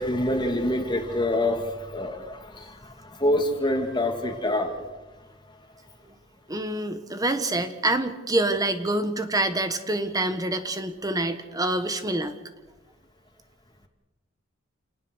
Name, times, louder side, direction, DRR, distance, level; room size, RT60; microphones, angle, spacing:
voice 1, 0.0-5.7, left 1 dB, 25° left, 4 dB, 2.6 m, -27 dB
voice 2, 6.5-12.3, right 2 dB, 20° right, 8 dB, 1.5 m, -26 dB
29.5 x 18.5 x 6.4 m, 1.1 s
head